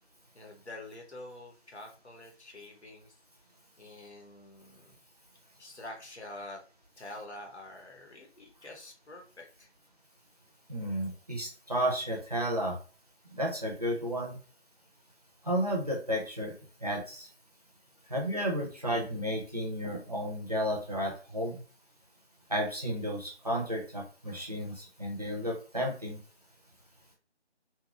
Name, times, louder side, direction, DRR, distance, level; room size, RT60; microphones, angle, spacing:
voice 1, 0.3-3.2 3.8-5.0 5.6-6.6 7.0-9.7, left 2 dB, 70° left, 2 dB, 1.0 m, -47 dB
voice 2, 10.7-12.8 13.3-14.4 15.4-16.5 16.8-17.3 18.1-21.6 22.5-26.2, equal, 35° right, -1 dB, 0.6 m, -32 dB
2.8 x 2.3 x 2.4 m, 0.38 s
figure-of-eight pair, 160°, 34 cm